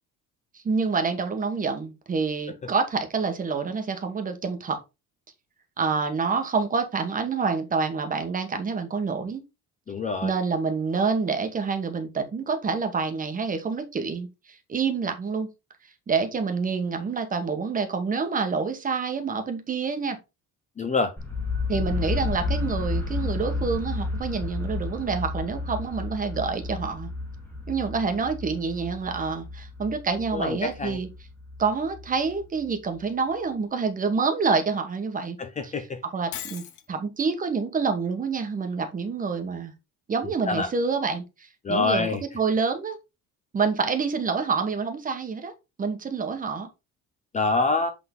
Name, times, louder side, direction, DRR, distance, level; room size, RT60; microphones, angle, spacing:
voice 1, 0.5-4.8 5.8-9.4 10.2-15.5 16.1-20.2 21.7-27.1 27.7-31.1 31.6-35.4 35.6-35.7 36.1-39.7 40.1-42.1 42.3-43.0 43.5-45.5 45.8-46.7, right 5 dB, 25° right, 1.2 m, -27 dB
voice 2, 9.9-10.3 20.8-21.1 30.3-31.0 35.4-36.0 40.5-40.7 41.6-42.2 47.3-47.9, left 3 dB, 20° left, 0.6 m, -25 dB
sound 1, 21.2-33.0, left 3 dB, 5° left, 1.4 m, -32 dB
Shatter, 36.3-36.9, left 10 dB, 60° left, 1.0 m, -37 dB
8.1 x 3.8 x 3.7 m
cardioid pair, 170°, 33 cm